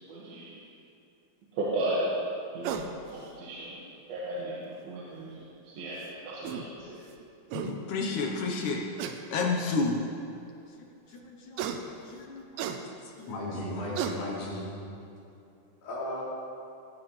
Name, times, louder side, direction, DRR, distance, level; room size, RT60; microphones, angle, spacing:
voice 1, 0.1-0.5 1.6-2.1 2.5-3.8 4.1-5.4 5.8-7.0, right 1 dB, 65° right, -7 dB, 3.5 m, -34 dB
sound 1, 2.6-2.9 4.4-4.5 6.0-6.1 6.4-6.7 7.2-7.3 7.5-7.7 9.0-9.2 10.0-10.1 11.6-11.8 12.6-12.8 13.5-13.6 14.0-14.2, right 8 dB, 90° right, 3.1 m, -33 dB
voice 2, 7.5-8.8 9.3-10.1 11.3-12.4 13.2-13.3, left 3 dB, 70° left, 1 dB, 1.8 m, -31 dB
voice 3, 13.3-14.7 15.8-16.2, left 1 dB, 45° left, -8 dB, 5.2 m, -35 dB
18.5 x 16.5 x 3.3 m, 2.7 s
omnidirectional pair, 4.9 m